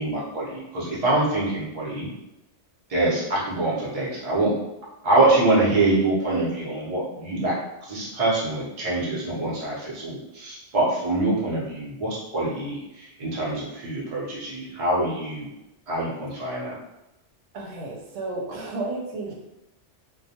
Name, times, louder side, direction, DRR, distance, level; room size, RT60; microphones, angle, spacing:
voice 1, 0.0-2.1 2.9-4.5 5.0-7.6 7.9-15.5 15.9-16.7, right 2 dB, 35° right, -6 dB, 0.7 m, -24 dB
voice 2, 17.5-19.3, right 2 dB, 90° right, -1 dB, 0.9 m, -32 dB
2.2 x 2.1 x 2.7 m, 0.92 s
omnidirectional pair, 1.2 m